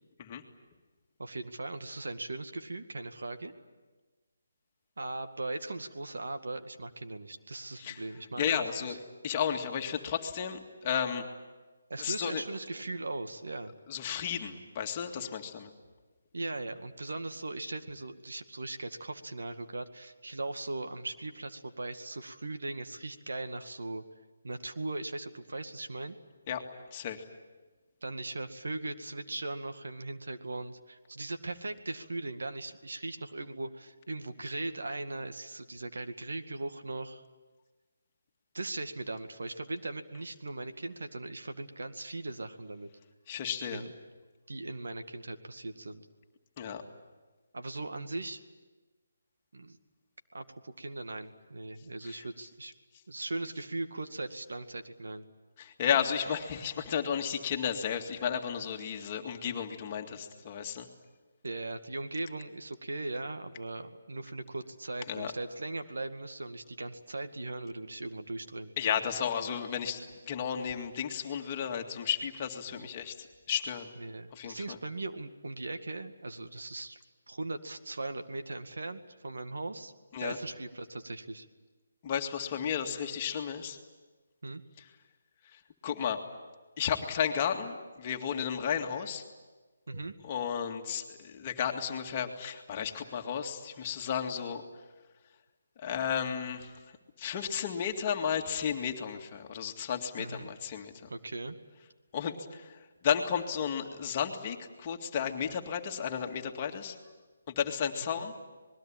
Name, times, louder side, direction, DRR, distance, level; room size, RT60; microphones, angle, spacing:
voice 1, 1.2-3.5 5.0-8.6 11.9-13.7 16.3-24.0 24.4-26.2 28.0-37.2 38.5-42.9 43.7-43.9 44.5-46.1 47.5-48.4 49.5-49.8 50.3-52.7 53.1-55.2 61.4-68.7 74.0-77.0 77.3-79.9 80.2-81.5 84.4-84.6 89.9-90.2 100.2-100.5 101.1-101.6 108.2-108.3, right 2 dB, 80° right, 7 dB, 2.1 m, -39 dB
voice 2, 8.4-9.0 9.2-11.3 12.0-12.4 13.9-15.7 26.5-26.6 26.9-27.2 43.3-43.8 46.6-46.8 52.0-52.2 55.6-60.9 65.1-65.3 68.8-70.0 70.3-73.9 74.3-74.8 80.1-80.4 82.0-83.8 85.5-86.2 86.8-89.2 89.9-94.6 95.8-96.7 97.2-101.1 102.1-107.0 107.5-108.3, left 8 dB, 25° left, 3 dB, 2.1 m, -33 dB
26.5 x 21.0 x 8.9 m, 1.3 s
hypercardioid pair, 165°, 0 cm